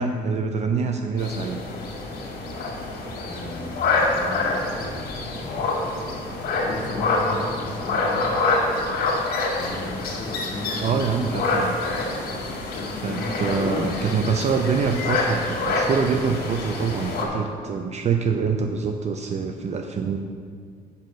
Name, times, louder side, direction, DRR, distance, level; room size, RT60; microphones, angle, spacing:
voice 1, 0.0-1.6 10.8-11.8 13.0-20.2, right 5 dB, 40° right, 5 dB, 0.5 m, -25 dB
sound 1, 1.2-17.2, left 3 dB, 65° left, 1.9 m, -26 dB
voice 2, 3.2-5.0 6.6-8.3 9.6-11.0 12.7-13.9, left 2 dB, 45° left, -1 dB, 1.6 m, -34 dB
6.7 x 5.3 x 6.3 m, 2.1 s
cardioid pair, 110°, 17 cm